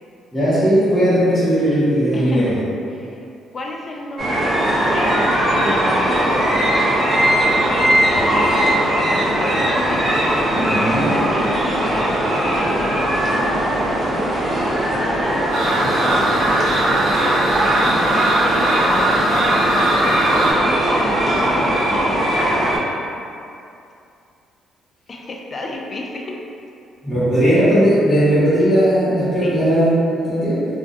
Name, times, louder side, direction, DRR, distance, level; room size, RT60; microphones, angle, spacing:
voice 1, 0.3-2.6 10.6-11.2 27.0-30.7, equal, 5° left, -17 dB, 1.0 m, -17 dB
voice 2, 2.1-2.6 2.9-3.2 3.5-6.9 7.7-10.7 11.1-12.2 12.5-13.6 14.5-16.8 17.6-20.1 20.6-23.0 25.1-26.4 29.4-29.6, left 2 dB, 40° left, 0 dB, 0.3 m, -32 dB
sound 1, 4.2-22.8, right 1 dB, 30° right, 0.6 m, -19 dB
sound 2, 15.5-20.5, right 1 dB, 75° right, 0.4 m, -20 dB
2.3 x 2.2 x 2.5 m, 2.6 s
cardioid pair, 85°, 0 cm